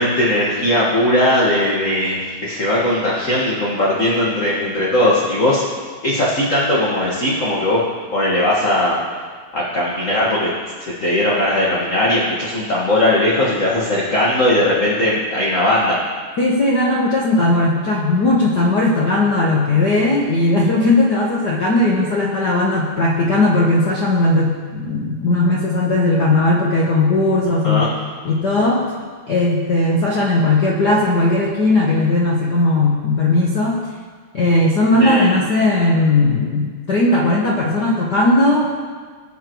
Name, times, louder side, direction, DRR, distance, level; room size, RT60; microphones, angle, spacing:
voice 1, 0.0-5.7 6.0-7.8 8.1-9.0 9.5-10.5 10.8-16.0 27.6-27.9 35.0-35.3, left 1 dB, 35° left, -6 dB, 1.4 m, -18 dB
voice 2, 16.4-27.9 28.2-28.9 29.3-33.9 34.3-38.7, left 2 dB, 70° left, -3 dB, 1.0 m, -17 dB
21.5 x 7.3 x 3.1 m, 1.5 s
omnidirectional pair, 3.4 m